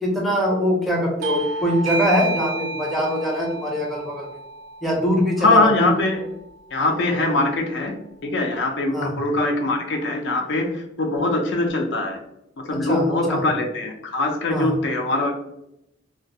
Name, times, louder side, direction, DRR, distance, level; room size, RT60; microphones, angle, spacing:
voice 1, 0.0-4.3 4.8-5.9 8.9-9.1 12.7-13.4 14.5-14.8, equal, ahead, -2 dB, 0.5 m, -23 dB
Bell / Doorbell, 1.2-6.3, right 2 dB, 85° right, 0.4 m, -31 dB
voice 2, 5.4-6.2 6.7-7.9 8.2-12.2 12.6-15.3, left 2 dB, 65° left, 3 dB, 0.4 m, -22 dB
2.3 x 2.1 x 2.6 m, 0.83 s
head